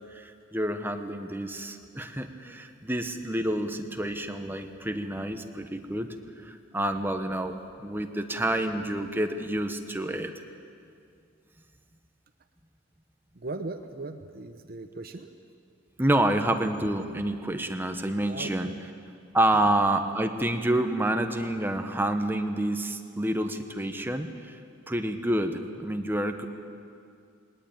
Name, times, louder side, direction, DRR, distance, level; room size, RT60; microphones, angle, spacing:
voice 1, 0.0-6.1 6.4-7.5 7.8-10.3 16.0-18.7 19.3-24.6 24.9-26.5, right 1 dB, 10° right, 6 dB, 1.1 m, -28 dB
voice 2, 13.3-15.3 18.3-18.7, right 2 dB, 50° right, 7 dB, 0.9 m, -38 dB
20.0 x 20.0 x 8.9 m, 2.4 s
head